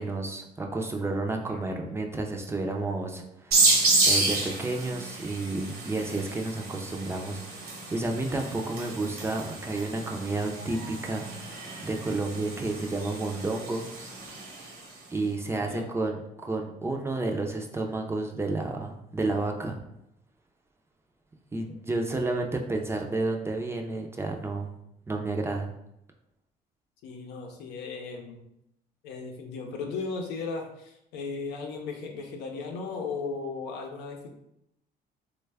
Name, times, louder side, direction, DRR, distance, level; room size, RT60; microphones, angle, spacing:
voice 1, 0.0-3.7 4.1-13.8 15.1-19.8 21.5-24.7 25.1-25.7, right 2 dB, 15° right, 2 dB, 0.4 m, -31 dB
sound 1, 3.5-14.9, right 3 dB, 65° right, 0.9 m, -30 dB
voice 2, 27.0-28.4 29.0-34.3, left 4 dB, 90° left, 2 dB, 0.7 m, -36 dB
3.2 x 2.2 x 3.3 m, 0.80 s
cardioid pair, 110°, 17 cm